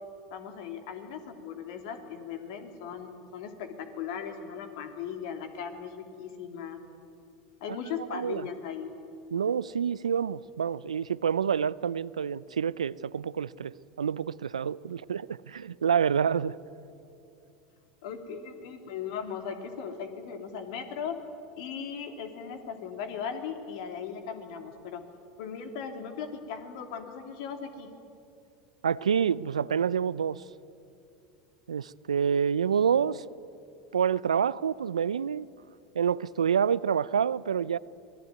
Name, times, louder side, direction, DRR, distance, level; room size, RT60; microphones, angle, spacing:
voice 1, 0.3-6.8 7.6-8.9 18.0-21.2 21.6-25.0 25.4-27.9, left 7 dB, 65° left, 5 dB, 3.0 m, -38 dB
voice 2, 8.1-8.5 9.3-16.6 28.8-30.4 31.7-33.2 33.9-35.5 35.9-37.8, right 7 dB, 90° right, 20 dB, 0.5 m, -27 dB
25.5 x 18.5 x 9.4 m, 2.6 s
hypercardioid pair, 85°, 3 cm